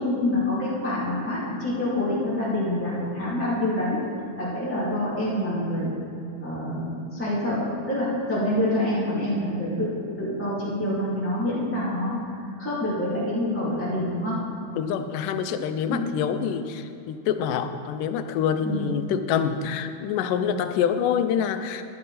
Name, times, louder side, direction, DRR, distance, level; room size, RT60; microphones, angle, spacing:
voice 1, 0.0-4.0 4.4-5.9 6.4-12.2 12.6-14.4 15.9-16.0 18.6-18.9, left 1 dB, 5° left, -10 dB, 2.2 m, -26 dB
voice 2, 14.8-21.8, left 8 dB, 90° left, 9 dB, 2.2 m, -26 dB
12.0 x 11.0 x 4.2 m, 2.6 s
omnidirectional pair, 3.7 m